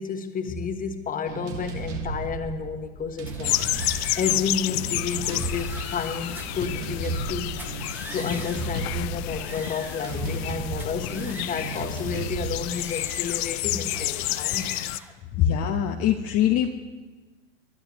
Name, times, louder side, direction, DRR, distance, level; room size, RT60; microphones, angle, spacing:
voice 1, 0.0-7.6 8.1-14.8, left 5 dB, 20° left, 7 dB, 1.4 m, -31 dB
sound 1, 1.2-14.0, right 3 dB, 70° right, 2.4 m, -36 dB
sound 2, 3.3-4.5 5.0-6.7 7.5-8.8 9.2-10.5 10.8-12.0 12.5-13.6 13.9-15.2, right 1 dB, 5° right, 1.5 m, -43 dB
sound 3, 3.4-15.0, left 18 dB, 55° left, 0.5 m, -30 dB
voice 2, 15.3-16.7, left 10 dB, 40° left, 3 dB, 1.0 m, -22 dB
29.5 x 12.0 x 3.1 m, 1.3 s
hypercardioid pair, 105°, 38 cm